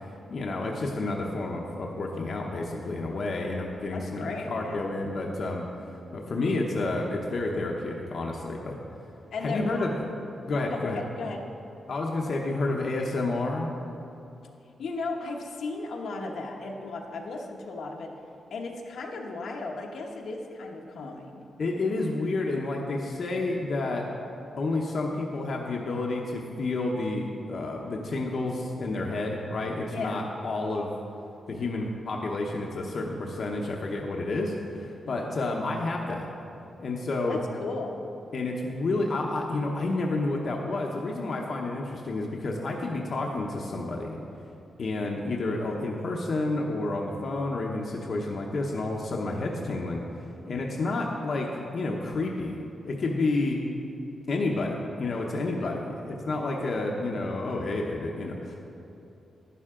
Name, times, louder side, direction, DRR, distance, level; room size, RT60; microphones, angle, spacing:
voice 1, 0.3-5.6 6.1-8.8 9.4-9.9 10.5-11.0 11.9-13.7 21.6-24.1 24.6-30.9 31.5-36.3 36.8-37.4 38.3-44.2 44.8-50.0 50.5-53.6 54.3-58.6, left 2 dB, 55° left, 0 dB, 0.9 m, -30 dB
voice 2, 3.9-4.9 9.3-9.9 10.6-11.5 14.8-18.1 18.5-21.5 29.9-30.3 37.3-38.0 55.5-55.9, left 3 dB, 80° left, 0 dB, 1.1 m, -36 dB
11.0 x 11.0 x 3.7 m, 2.7 s
wide cardioid pair, 145°, 0 cm